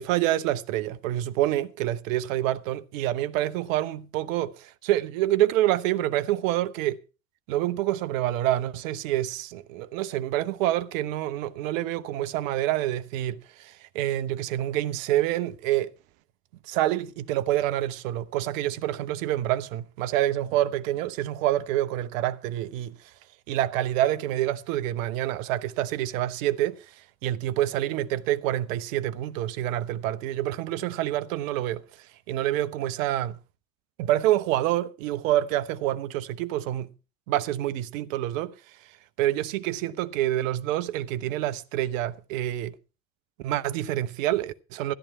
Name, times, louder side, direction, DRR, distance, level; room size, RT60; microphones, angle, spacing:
voice 1, 0.0-7.0 7.5-15.9 16.6-23.1 23.5-33.4 34.0-36.9 37.3-38.9 39.2-42.8 43.4-44.9, right 13 dB, 65° right, 1.0 m, -27 dB
14.0 x 10.5 x 4.5 m
figure-of-eight pair, 60°, 43 cm